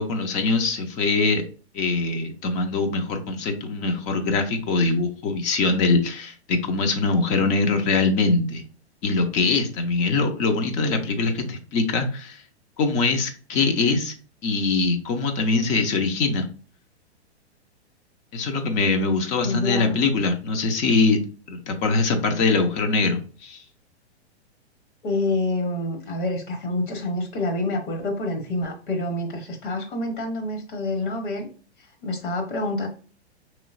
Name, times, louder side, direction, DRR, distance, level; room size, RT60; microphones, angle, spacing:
voice 1, 0.0-1.4 1.7-8.6 9.0-12.4 12.8-14.1 14.4-16.5 18.3-21.2 21.5-23.6, left 3 dB, 25° left, 6 dB, 0.5 m, -23 dB
voice 2, 19.4-20.0 25.0-31.5 32.0-32.9, left 2 dB, 45° left, 3 dB, 1.1 m, -27 dB
5.2 x 3.1 x 2.5 m, 0.39 s
figure-of-eight pair, 105°, 34 cm